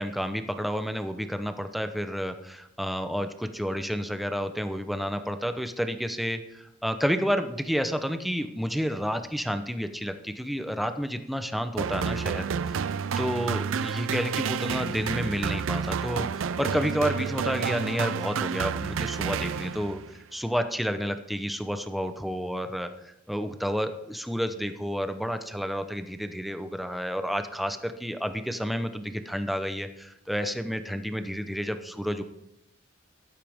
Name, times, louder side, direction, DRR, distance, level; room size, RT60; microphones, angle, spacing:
voice 1, 0.0-12.8 13.2-32.2, equal, ahead, 7 dB, 0.8 m, -30 dB
sound 1, 11.8-20.1, right 6 dB, 75° right, 0.4 m, -30 dB
13.0 x 12.0 x 3.6 m, 0.82 s
head